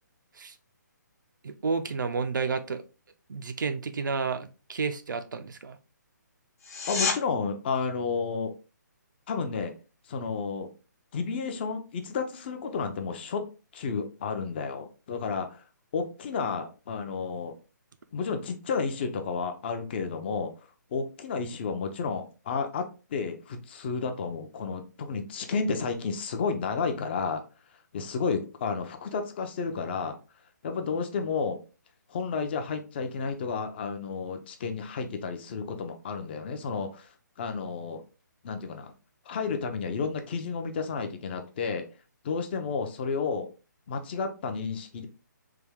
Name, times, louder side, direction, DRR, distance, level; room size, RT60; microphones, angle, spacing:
voice 1, 1.4-2.8 3.3-5.8, right 5 dB, 80° right, 9 dB, 0.5 m, -31 dB
sound 1, 6.6-7.2 18.5-18.6, left 4 dB, 50° left, 0.8 m, -29 dB
voice 2, 6.9-8.5 9.3-9.7 10.1-10.7 11.1-13.4 13.7-15.6 15.9-17.5 18.1-20.5 20.9-27.4 27.9-30.2 30.6-31.6 32.1-37.1 37.4-38.0 38.4-38.9 39.3-41.8 42.2-43.5 43.9-45.1, left 5 dB, 35° left, 6 dB, 0.5 m, -31 dB
3.4 x 2.2 x 3.3 m, 0.32 s
hypercardioid pair, 155°, 10 cm